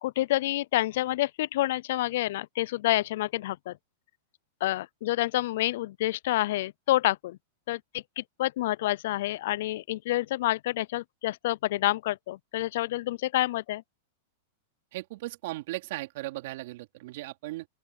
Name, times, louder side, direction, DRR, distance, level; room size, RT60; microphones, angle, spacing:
voice 1, 0.0-3.8 4.6-7.4 7.7-13.8, left 16 dB, 65° left, 0.5 m, -28 dB
voice 2, 14.9-17.7, right 19 dB, 60° right, 3.0 m, -37 dB
open air
hypercardioid pair, 115°, 0 cm